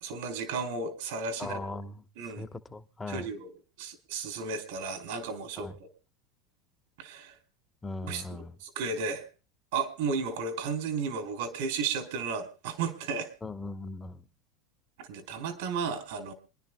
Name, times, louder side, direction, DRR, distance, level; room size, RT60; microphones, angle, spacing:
voice 1, 0.0-1.6 2.2-2.4 3.1-3.5 3.8-5.7 7.0-7.4 8.1-8.2 8.6-9.2 9.7-13.3 15.0-16.3, right 5 dB, 80° right, 3.4 m, -33 dB
voice 2, 1.4-3.3 5.6-5.7 7.8-8.6 13.4-14.3, left 2 dB, 15° left, 1.0 m, -39 dB
27.5 x 10.5 x 2.2 m
supercardioid pair, 105°, 0 cm